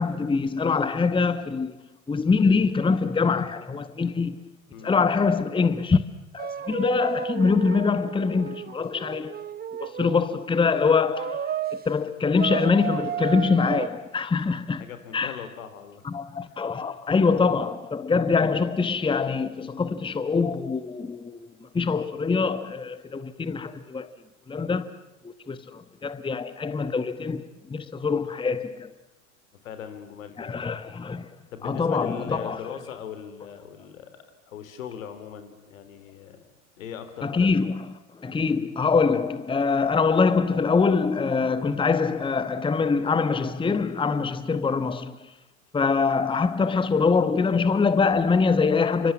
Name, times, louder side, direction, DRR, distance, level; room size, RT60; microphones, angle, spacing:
voice 1, 0.0-1.8 2.1-4.4 4.8-6.0 6.3-9.3 9.8-11.5 11.9-14.8 15.1-15.3 16.0-24.1 24.5-25.0 25.2-27.4 27.7-28.9 30.4-31.2 31.6-32.6 37.2-37.8 38.2-45.2 45.7-49.1, left 4 dB, 10° left, 1.2 m, -24 dB
sound 1, 6.4-10.3 11.2-11.9 12.4-13.9, right 9 dB, 20° right, 0.9 m, -33 dB
voice 2, 14.7-16.1 16.4-16.7 29.6-30.7 31.5-36.4 36.8-37.5, left 8 dB, 70° left, 3.6 m, -40 dB
29.0 x 25.0 x 7.3 m
hypercardioid pair, 80°, 41 cm